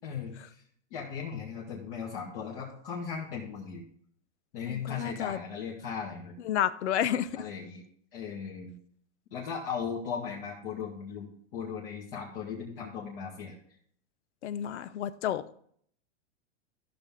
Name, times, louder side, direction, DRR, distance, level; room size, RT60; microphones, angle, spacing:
voice 1, 0.0-0.5 0.9-3.8 4.5-6.4 7.4-7.8 8.1-8.7 9.3-13.6, left 6 dB, 50° left, -3 dB, 2.0 m, -37 dB
voice 2, 4.6-5.4 6.4-7.3 14.4-15.4, left 10 dB, 80° left, 15 dB, 0.7 m, -30 dB
14.0 x 6.0 x 3.7 m, 0.63 s
supercardioid pair, 155°, 34 cm